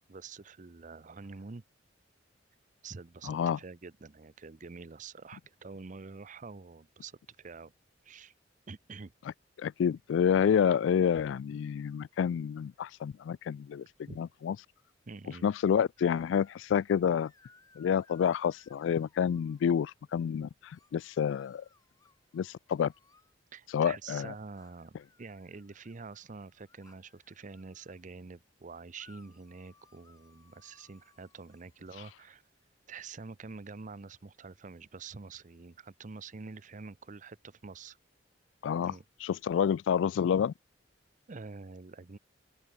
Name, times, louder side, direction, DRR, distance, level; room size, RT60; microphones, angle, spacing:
voice 1, 0.0-1.6 2.8-7.7 8.0-8.3 8.7-9.1 14.1-14.2 15.1-15.5 23.5-32.4 32.9-38.0 38.7-39.0 41.3-42.2, right 4 dB, 40° right, 0.6 m, -47 dB
voice 2, 3.3-3.6 9.6-13.9 14.2-14.6 15.4-17.3 17.8-20.5 20.9-21.6 22.3-22.9 23.7-24.3 38.6-38.9 39.2-40.5, left 8 dB, 80° left, 0.3 m, -28 dB
sound 1, 16.0-16.7 17.2-20.0 20.7-23.4 24.6-28.0 29.0-32.1, left 3 dB, 20° left, 3.2 m, -64 dB
open air
head